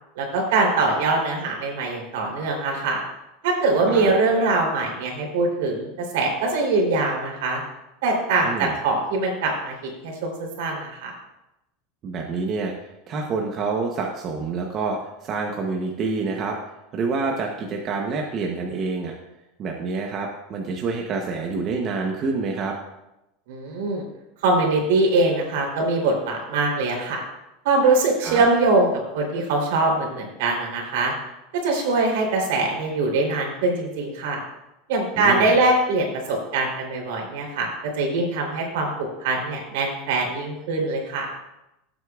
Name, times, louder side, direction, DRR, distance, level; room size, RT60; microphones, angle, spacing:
voice 1, 0.2-3.0 3.4-7.6 8.0-9.7 10.0-11.1 23.5-24.0 24.4-27.2 27.6-28.9 29.1-31.1 31.6-34.4 34.9-37.7 38.0-41.3, right 3 dB, 70° right, -1 dB, 3.2 m, -22 dB
voice 2, 8.4-8.7 12.0-12.7 13.1-16.6 16.9-19.1 19.6-22.8 28.2-28.4 35.2-35.6, right 4 dB, 30° right, 1 dB, 0.8 m, -27 dB
16.5 x 8.0 x 2.4 m, 0.92 s
supercardioid pair, 175°, 0 cm